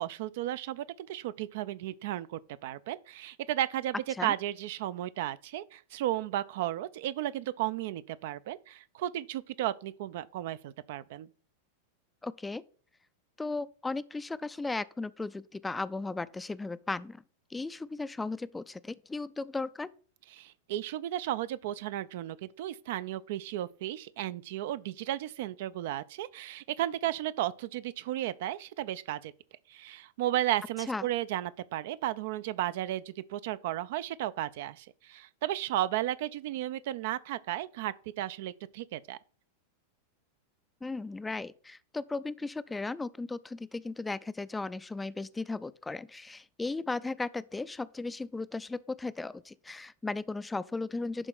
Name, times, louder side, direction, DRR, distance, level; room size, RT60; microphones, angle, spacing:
voice 1, 0.0-3.9 4.2-11.3 20.3-29.3 29.7-39.2, right 13 dB, 50° right, 0.4 m, -34 dB
voice 2, 12.2-12.6 13.4-17.2 17.5-19.9 30.9-31.1 40.8-51.3, left 3 dB, 10° left, 0.4 m, -36 dB
11.0 x 3.8 x 5.9 m
figure-of-eight pair, 90°, 0 cm